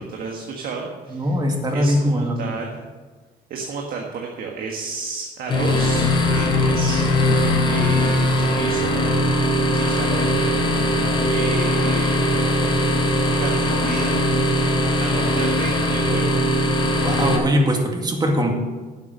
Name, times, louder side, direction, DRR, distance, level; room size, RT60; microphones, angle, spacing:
voice 1, 0.0-1.4 1.7-2.8 3.5-7.1 7.7-9.0 9.7-10.3 11.2-13.0 13.4-14.2 15.0-16.3, right 4 dB, 60° right, 1 dB, 1.6 m, -32 dB
voice 2, 1.1-2.3 17.0-18.5, equal, 25° right, 2 dB, 2.1 m, -21 dB
sound 1, 5.5-17.4, left 1 dB, 30° left, 3.1 m, -20 dB
11.5 x 7.4 x 6.4 m, 1.4 s
cardioid pair, 110°, 17 cm